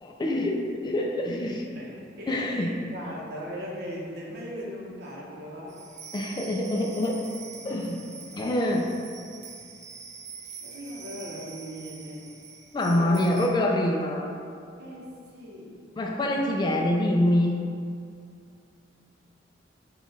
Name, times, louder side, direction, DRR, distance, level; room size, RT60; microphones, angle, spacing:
voice 1, 0.0-1.6 2.3-2.7 6.1-7.2 7.6-8.0 8.3-8.9 12.7-14.3 16.0-17.6, left 1 dB, 25° left, -1 dB, 0.3 m, -25 dB
voice 2, 1.8-5.8 7.7-8.1 10.6-12.3 12.8-13.2 14.8-15.8, equal, 60° right, -4 dB, 0.8 m, -39 dB
sound 1, 5.7-13.5, right 6 dB, 40° right, 0.5 m, -45 dB
5.6 x 2.4 x 4.0 m, 2.3 s
head